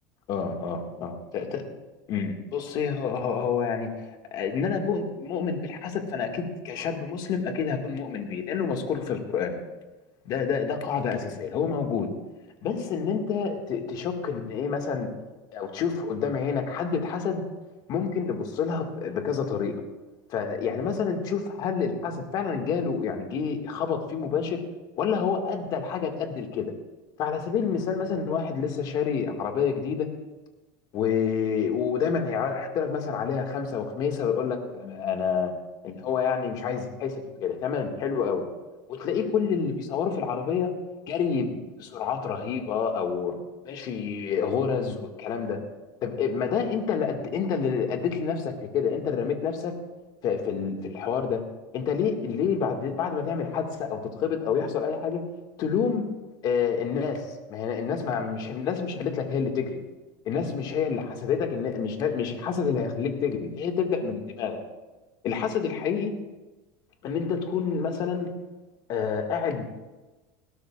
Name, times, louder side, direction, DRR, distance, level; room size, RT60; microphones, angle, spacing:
voice 1, 0.3-1.6 2.1-3.9 4.3-9.6 10.3-12.1 12.6-15.1 15.5-17.4 17.9-19.8 20.3-24.6 25.0-26.7 27.2-30.1 30.9-35.5 35.8-38.4 38.9-40.7 41.1-43.4 43.6-45.6 46.0-49.7 50.2-51.4 51.7-55.2 55.6-56.1 56.4-59.8 60.3-64.6 65.2-66.1 67.0-68.3 68.9-69.7, left 6 dB, 45° left, 4 dB, 2.0 m, -28 dB
20.5 x 17.0 x 2.5 m, 1.2 s
supercardioid pair, 145°, 10 cm